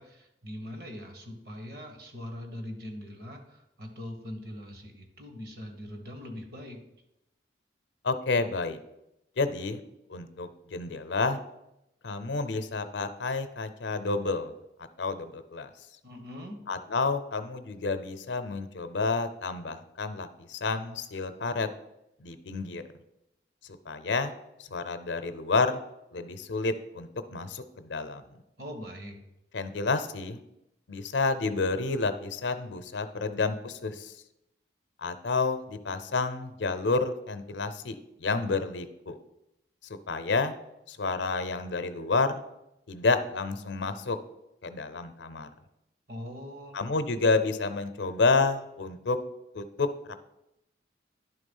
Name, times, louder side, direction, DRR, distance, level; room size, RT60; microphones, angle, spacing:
voice 1, 0.0-6.8 16.0-16.6 28.6-29.2 46.1-46.8, equal, 55° right, 4 dB, 1.4 m, -42 dB
voice 2, 8.0-8.8 9.4-9.8 10.1-11.4 12.0-14.5 15.0-15.7 16.7-21.7 22.2-22.8 23.9-24.3 24.7-25.8 26.1-28.2 29.5-30.4 30.9-34.1 35.0-39.2 40.1-40.6 40.9-42.3 42.9-44.2 44.6-45.5 46.7-49.2 49.5-50.1, left 3 dB, 75° left, 10 dB, 0.6 m, -29 dB
10.5 x 3.6 x 5.4 m, 0.88 s
head